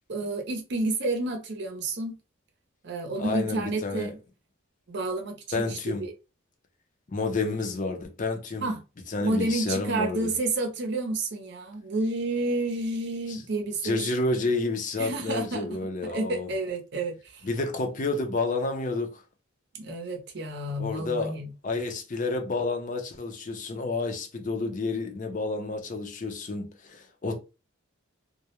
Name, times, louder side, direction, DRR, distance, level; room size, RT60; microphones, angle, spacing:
voice 1, 0.1-2.2 2.8-4.2 4.9-6.1 8.6-8.8 9.2-14.0 15.0-15.7 16.0-17.5 19.7-21.5, right 2 dB, 55° right, 0.6 m, -30 dB
voice 2, 3.2-4.1 5.5-6.1 7.1-8.7 9.1-10.3 13.3-13.4 13.8-16.5 17.4-19.2 20.8-21.3 21.6-27.4, left 3 dB, 40° left, 0.5 m, -30 dB
2.3 x 2.1 x 2.8 m
head